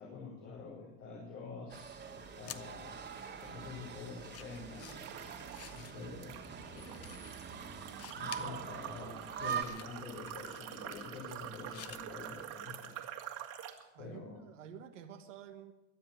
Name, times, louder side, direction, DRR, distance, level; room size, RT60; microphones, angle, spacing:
voice 1, 0.0-3.0 3.4-5.0 5.3-6.3 6.7-7.3 8.2-12.9 14.0-14.5, left 4 dB, 75° left, -4 dB, 5.1 m, -47 dB
sound 1, 1.7-9.6, right 7 dB, 30° right, 1.9 m, -44 dB
sound 2, 2.0-12.5, left 11 dB, 40° left, 1.0 m, -54 dB
sound 3, 4.9-5.9 6.2-13.8, right 11 dB, 55° right, 2.4 m, -47 dB
voice 2, 13.9-15.7, right 8 dB, 90° right, 5 dB, 1.5 m, -50 dB
22.5 x 7.8 x 7.4 m, 1.0 s
hypercardioid pair, 95°, 37 cm